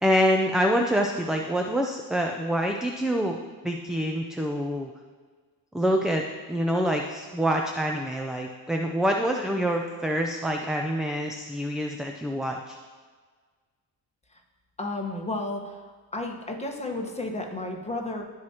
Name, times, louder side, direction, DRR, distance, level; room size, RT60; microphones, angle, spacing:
voice 1, 0.0-3.4 3.6-4.9 5.7-6.2 6.5-12.8, equal, ahead, 2 dB, 0.4 m, -26 dB
voice 2, 14.8-15.8 16.1-18.2, left 2 dB, 15° left, 1 dB, 1.3 m, -32 dB
14.5 x 4.9 x 2.9 m, 1.5 s
cardioid pair, 105°, 44 cm